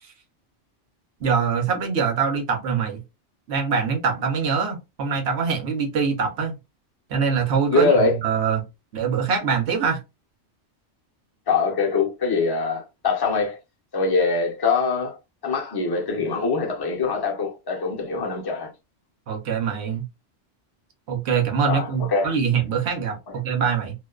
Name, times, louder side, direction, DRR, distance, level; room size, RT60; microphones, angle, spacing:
voice 1, 1.2-3.0 3.5-6.5 7.1-8.6 8.9-10.0 19.3-20.0 21.1-23.9, right 6 dB, 70° right, 1.0 m, -24 dB
voice 2, 7.7-8.2 11.5-13.6 13.9-15.2 15.4-18.7 21.7-22.3, left 4 dB, 30° left, 0.5 m, -23 dB
2.5 x 2.2 x 2.3 m
omnidirectional pair, 1.2 m